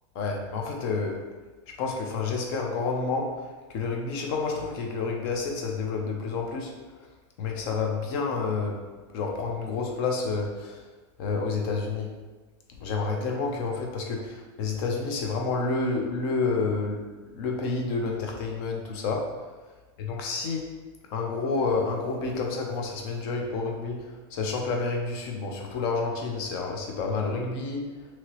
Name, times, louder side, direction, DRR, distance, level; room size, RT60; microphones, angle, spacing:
voice 1, 0.1-1.2 1.8-6.7 7.4-8.8 9.1-10.8 11.2-12.1 12.8-19.4 20.0-20.8 21.1-28.0, left 4 dB, 50° left, 1 dB, 0.7 m, -29 dB
2.9 x 2.9 x 2.9 m, 1.3 s
supercardioid pair, 140°, 15 cm